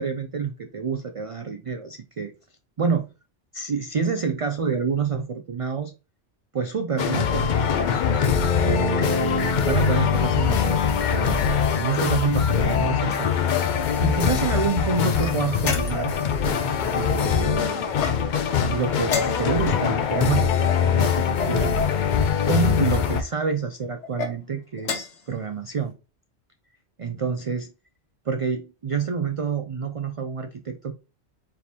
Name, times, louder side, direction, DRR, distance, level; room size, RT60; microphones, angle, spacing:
voice 1, 0.0-2.3 2.8-3.1 3.5-5.9 6.5-7.9 8.6-11.4 11.7-13.3 14.0-16.1 16.9-17.9 18.7-21.8 22.5-25.9 27.0-27.7 28.3-30.9, right 5 dB, 65° right, 0.3 m, -28 dB
sound 1, 7.0-23.2, left 7 dB, 55° left, 0.6 m, -22 dB
sound 2, 15.2-16.2 17.9-18.5 19.0-19.8 20.6-21.6 22.5-23.0 24.0-24.3 24.8-25.3, left 5 dB, 85° left, 1.3 m, -31 dB
4.4 x 3.5 x 2.8 m
omnidirectional pair, 1.2 m